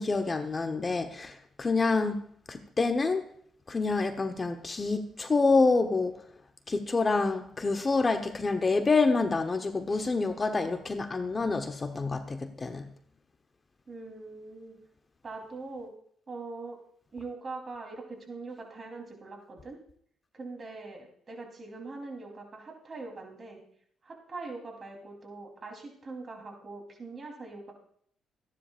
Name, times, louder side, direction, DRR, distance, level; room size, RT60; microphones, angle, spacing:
voice 1, 0.0-2.2 2.5-3.2 3.7-6.2 6.7-12.9, left 3 dB, 30° left, 1.0 m, -27 dB
voice 2, 13.9-14.8 15.2-15.9 16.3-16.8 17.1-19.8 20.3-23.6 24.0-27.7, right 3 dB, 35° right, 3.5 m, -42 dB
26.0 x 10.0 x 2.5 m
cardioid pair, 90°, 0 cm